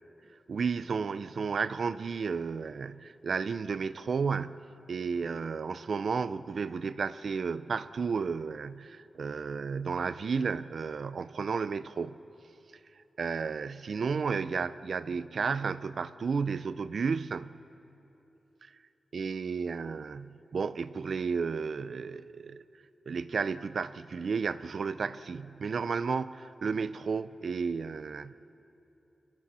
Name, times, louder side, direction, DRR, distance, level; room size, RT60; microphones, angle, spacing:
voice 1, 0.5-4.6 4.9-12.1 13.2-17.6 18.6-18.7 19.1-22.6 23.1-28.3, right 5 dB, 60° right, 15 dB, 0.5 m, -32 dB
30.0 x 23.5 x 4.3 m, 3.0 s
wide cardioid pair, 160°, 0 cm